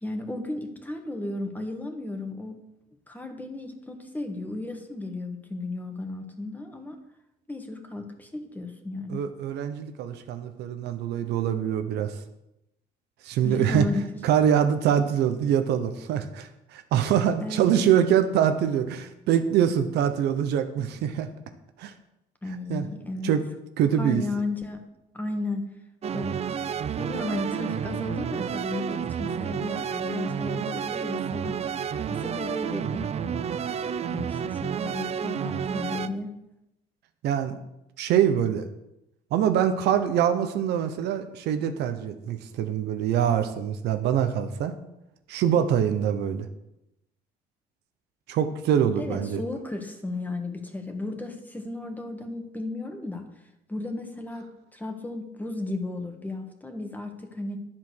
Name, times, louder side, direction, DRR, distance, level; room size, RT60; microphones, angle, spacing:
voice 1, 0.0-2.6 3.1-7.0 7.5-9.2 13.4-14.0 17.4-17.8 22.4-23.3 23.9-24.9 25.1-25.6 26.1-26.4 26.9-31.6 32.1-33.4 34.1-36.3 49.0-53.2 53.7-57.6, left 2 dB, 10° left, 4 dB, 1.7 m, -34 dB
voice 2, 9.1-12.1 13.2-13.9 14.2-21.3 21.8-21.9 22.7-22.9 23.2-23.4 23.8-24.2 37.2-37.6 38.0-38.7 39.3-44.7 45.3-46.5 48.3-49.4, right 9 dB, 80° right, 8 dB, 1.1 m, -24 dB
sound 1, 26.0-36.1, right 8 dB, 40° right, 0.5 m, -30 dB
11.0 x 7.6 x 6.3 m, 0.88 s
cardioid pair, 110°, 17 cm